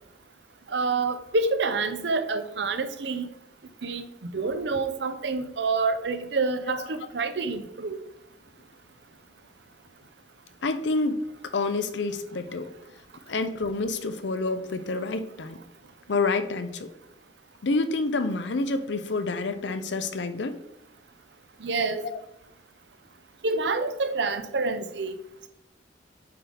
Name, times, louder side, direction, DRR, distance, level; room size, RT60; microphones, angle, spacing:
voice 1, 0.7-3.3 3.8-8.0 21.6-22.1 23.4-25.2, right 3 dB, 70° right, 10 dB, 0.6 m, -27 dB
voice 2, 10.6-11.2 11.5-12.7 13.3-15.6 16.1-16.9 17.6-20.6 22.0-22.2, left 3 dB, 75° left, 10 dB, 0.6 m, -28 dB
8.5 x 3.9 x 3.4 m, 0.83 s
head